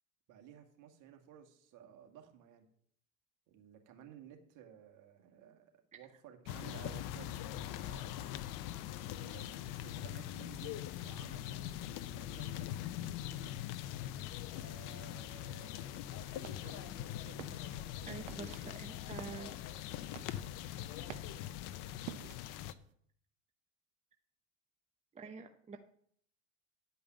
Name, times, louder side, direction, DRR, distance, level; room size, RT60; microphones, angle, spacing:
voice 1, 0.3-2.7 3.5-8.2 9.0-12.7 14.5-18.7 22.2-22.4, right 9 dB, 50° right, 5 dB, 2.1 m, -56 dB
sound 1, 6.5-22.7, left 12 dB, 50° left, 0.8 m, -42 dB
sound 2, 16.0-22.9, right 13 dB, 80° right, 0.8 m, -53 dB
voice 2, 18.1-19.5 25.1-25.8, right 5 dB, 15° right, 5 dB, 0.9 m, -47 dB
10.5 x 5.4 x 7.4 m, 0.63 s
hypercardioid pair, 90°, 40 cm